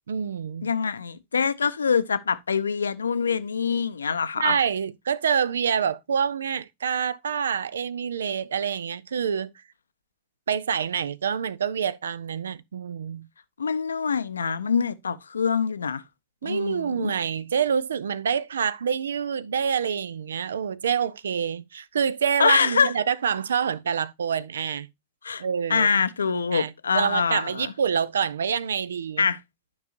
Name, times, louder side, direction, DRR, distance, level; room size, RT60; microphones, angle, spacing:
voice 1, 0.1-0.7 4.4-9.5 10.5-13.3 16.4-24.9 25.4-25.9 26.5-29.3, right 7 dB, 65° right, 0.4 m, -27 dB
voice 2, 0.6-4.6 13.6-16.0 16.4-17.1 22.4-22.9 25.2-25.4 25.7-27.7 29.2-29.4, left 6 dB, 75° left, 0.5 m, -24 dB
11.5 x 5.4 x 2.5 m
figure-of-eight pair, 90°, 0 cm